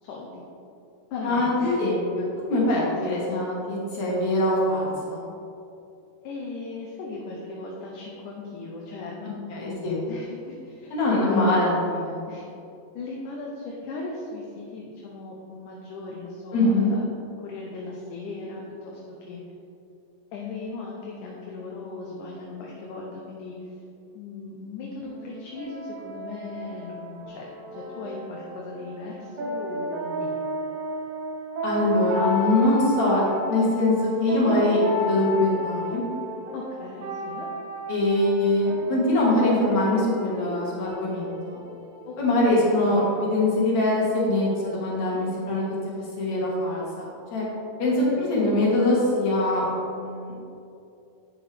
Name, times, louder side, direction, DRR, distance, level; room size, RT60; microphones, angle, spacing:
voice 1, 0.0-0.4 1.1-1.8 6.2-11.4 12.3-12.4 12.9-17.0 17.4-19.4 20.3-23.6 24.1-30.4 36.5-37.5 42.1-42.2 42.5-42.9 45.0-45.2 47.8-48.1, left 3 dB, 75° left, -2 dB, 2.2 m, -38 dB
voice 2, 1.2-5.3 9.5-10.0 10.9-12.2 16.5-16.9 31.6-36.0 37.9-41.6 42.2-47.4 47.8-49.7 49.9-50.4, left 1 dB, 55° left, -5 dB, 2.9 m, -23 dB
sound 1, 25.0-42.5, equal, 75° right, 2.7 m, -33 dB
9.6 x 6.4 x 3.4 m, 2.6 s
omnidirectional pair, 4.0 m